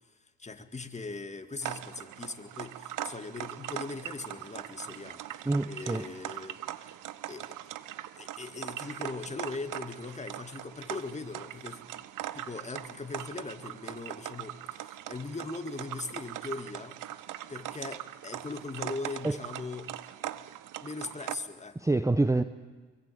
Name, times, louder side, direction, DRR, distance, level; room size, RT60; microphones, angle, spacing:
voice 1, 0.2-6.9 7.3-7.6 8.2-12.1 12.3-17.0 17.5-19.9 20.2-20.4 20.8-21.9, left 3 dB, 20° left, 2.2 m, -40 dB
sound 1, 1.6-21.4, right 13 dB, 60° right, 1.0 m, -41 dB
voice 2, 5.4-6.1 19.2-19.4 21.7-22.4, right 2 dB, 10° right, 0.9 m, -26 dB
24.5 x 23.0 x 8.7 m
hypercardioid pair, 65°, 35 cm